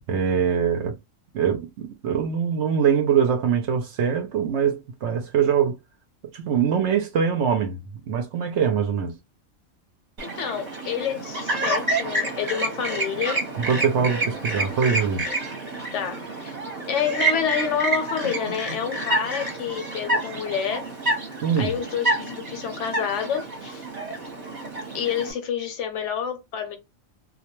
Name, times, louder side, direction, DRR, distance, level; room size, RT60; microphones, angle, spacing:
voice 1, 0.1-1.0 1.3-5.8 6.3-9.2 13.6-15.3 21.4-21.8, right 7 dB, 65° right, 0.8 m, -23 dB
voice 2, 10.2-13.4 15.9-16.5 16.9-20.9 21.6-23.9 24.9-26.8, left 8 dB, 70° left, 0.9 m, -28 dB
Chirp tweet, 10.2-25.3, right 2 dB, 35° right, 0.8 m, -28 dB
2.3 x 2.2 x 2.9 m
omnidirectional pair, 1.4 m